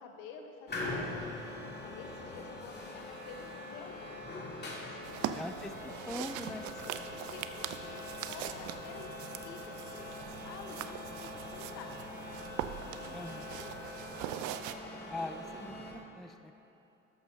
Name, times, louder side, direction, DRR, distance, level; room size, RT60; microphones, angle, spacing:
voice 1, 0.0-1.4 1.8-4.2 4.8-5.8 6.4-6.5 6.8-9.1 9.4-11.9 12.7-13.1 13.5-13.9, left 5 dB, 65° left, 4 dB, 1.2 m, -50 dB
sound 1, 0.7-15.9, left 2 dB, 30° left, 2.4 m, -43 dB
sound 2, 5.0-14.7, right 11 dB, 60° right, 0.6 m, -42 dB
voice 2, 5.3-5.7 6.1-6.7 13.1-13.6 15.1-16.6, left 2 dB, ahead, 8 dB, 0.3 m, -42 dB
13.0 x 10.0 x 2.8 m, 3.0 s
hypercardioid pair, 65°, 34 cm